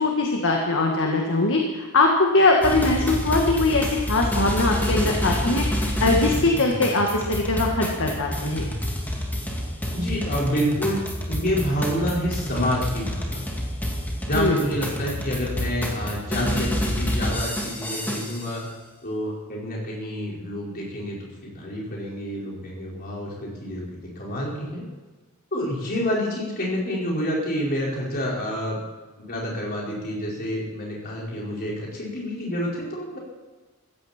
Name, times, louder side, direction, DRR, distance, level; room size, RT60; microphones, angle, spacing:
voice 1, 0.0-8.6 14.3-14.7, left 2 dB, 60° left, 1 dB, 1.8 m, -21 dB
sound 1, 2.6-18.5, equal, 10° left, 2.4 m, -28 dB
voice 2, 9.9-13.4 14.3-18.6 19.0-24.8 25.5-28.8 29.2-33.2, equal, 45° left, -4 dB, 5.0 m, -28 dB
16.0 x 15.0 x 4.4 m, 1.3 s
head